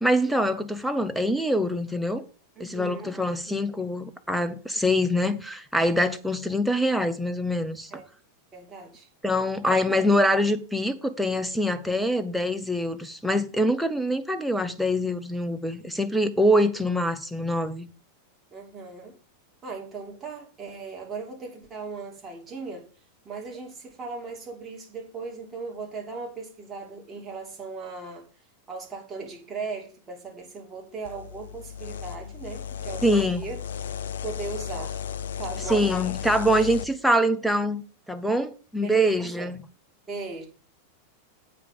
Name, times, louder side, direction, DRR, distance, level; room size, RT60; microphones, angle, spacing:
voice 1, 0.0-2.2 2.6-7.9 9.2-17.9 33.0-33.4 35.7-37.8 38.1-39.6, equal, ahead, 1.0 m, -24 dB
voice 2, 2.6-3.1 3.5-3.7 7.9-8.0 8.5-9.1 9.6-9.7 18.5-19.2 19.6-22.9 23.2-28.3 28.7-33.6 34.2-35.0 35.4-35.9 38.8-39.5 40.1-40.5, right 4 dB, 20° right, 2.9 m, -37 dB
sound 1, 31.0-36.9, left 8 dB, 60° left, 0.5 m, -35 dB
8.5 x 5.1 x 6.9 m
figure-of-eight pair, 90°, 0 cm